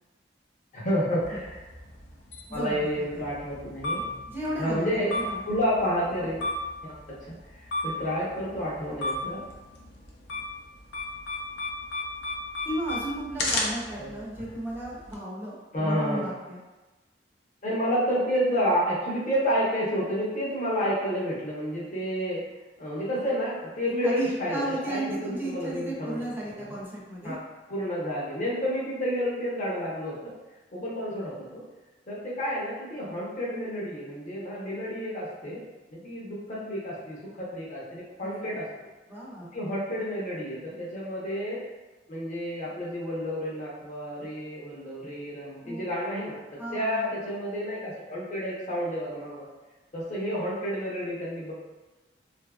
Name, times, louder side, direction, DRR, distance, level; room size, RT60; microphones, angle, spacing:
voice 1, 0.7-1.7 2.5-4.0 4.6-5.1 5.5-6.4 6.8-6.9 7.3-7.4 7.8-9.4 14.0-14.1 15.7-16.3 17.6-22.4 22.8-26.2 26.6-26.8 27.2-27.3 27.7-30.3 30.7-31.6 32.1-35.6 35.9-38.7 39.5-41.6 42.1-46.4 46.7-49.5 49.9-51.5, equal, 45° left, -6 dB, 0.8 m, -30 dB
sound 1, 1.2-15.1, left 2 dB, 70° left, 0.5 m, -35 dB
voice 2, 2.5-3.2 4.3-5.4 12.6-16.6 24.0-27.4 38.2-38.5 39.1-39.6 45.6-45.9 46.6-47.1, right 1 dB, 10° right, -6 dB, 0.6 m, -34 dB
2.7 x 2.6 x 2.3 m, 1.2 s
head